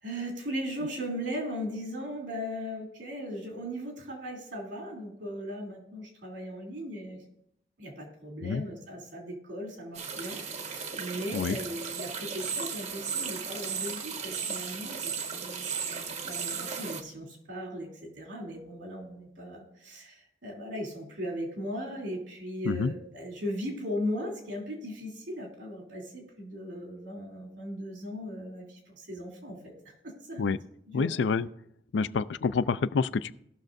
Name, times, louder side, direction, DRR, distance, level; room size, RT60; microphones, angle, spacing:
voice 1, 0.0-7.2 7.8-30.5 30.9-31.2, equal, 90° right, -1 dB, 2.9 m, -38 dB
sound 1, 9.9-17.0, right 6 dB, 40° right, 0.7 m, -35 dB
voice 2, 30.9-31.5 31.9-33.3, left 5 dB, 75° left, 15 dB, 0.4 m, -27 dB
18.0 x 6.2 x 2.6 m, 0.75 s
head